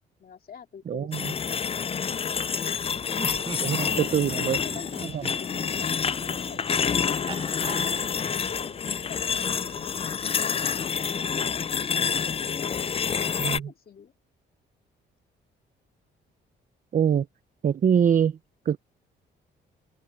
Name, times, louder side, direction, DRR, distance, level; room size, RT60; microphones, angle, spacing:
voice 1, 0.2-2.5 3.5-6.6 7.1-8.0 8.3-8.8 9.1-11.6 12.4-13.0 13.4-14.1, left 7 dB, 50° left, 2.5 m, -47 dB
voice 2, 0.9-1.3 3.6-4.6 5.1-5.2 13.4-13.6 16.9-17.3 17.6-18.4 18.7-18.8, right 8 dB, 40° right, 0.6 m, -23 dB
sound 1, 1.1-13.6, left 6 dB, 30° left, 0.4 m, -28 dB
Laughter, 3.1-8.5, right 4 dB, 25° right, 1.0 m, -41 dB
sound 2, 4.2-10.7, right 11 dB, 70° right, 3.4 m, -52 dB
cardioid pair, 90°, 20 cm